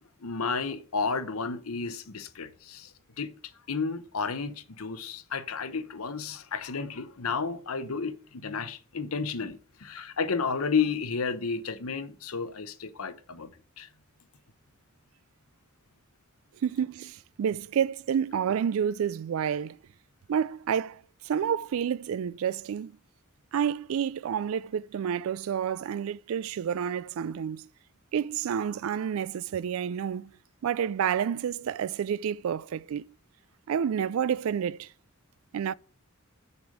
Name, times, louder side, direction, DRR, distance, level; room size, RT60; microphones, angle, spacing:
voice 1, 0.2-2.9 3.2-3.3 3.7-13.5 13.8-13.9, left 5 dB, 90° left, 0.9 m, -32 dB
voice 2, 16.6-19.8 20.3-22.9 23.5-27.7 28.1-30.3 30.6-33.0 33.7-34.9 35.5-35.7, right 8 dB, 70° right, 0.3 m, -29 dB
6.9 x 5.1 x 6.4 m
head